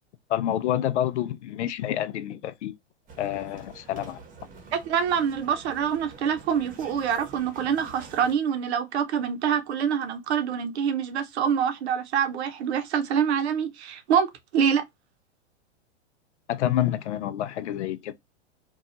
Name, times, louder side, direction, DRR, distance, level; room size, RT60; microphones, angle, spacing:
voice 1, 0.3-2.7 3.2-4.2 16.5-18.1, left 11 dB, 85° left, 0.5 m, -28 dB
sound 1, 3.1-8.4, right 4 dB, 25° right, 0.8 m, -47 dB
voice 2, 4.7-14.3 14.5-14.8, right 8 dB, 70° right, 0.7 m, -25 dB
2.8 x 2.3 x 2.5 m
hypercardioid pair, 120°, 34 cm